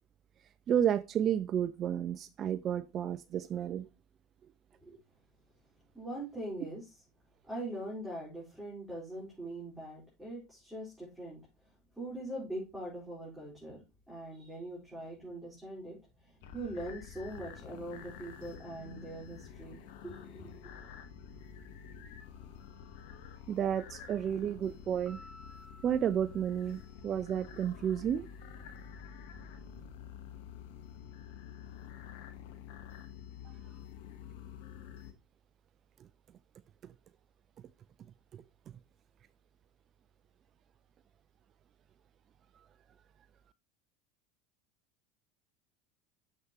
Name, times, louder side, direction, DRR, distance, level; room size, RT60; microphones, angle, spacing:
voice 1, 0.7-3.9 23.5-25.2 25.8-28.3 38.3-38.4, right 9 dB, 40° right, 0.4 m, -31 dB
voice 2, 5.9-6.9 7.5-11.4 12.0-13.8 14.1-20.6, right 1 dB, 5° right, 4.2 m, -42 dB
sound 1, 16.4-35.1, left 8 dB, 70° left, 1.1 m, -49 dB
Piano, 25.1-27.6, left 1 dB, 20° left, 3.7 m, -56 dB
7.2 x 6.5 x 2.9 m
hypercardioid pair, 80°, 0 cm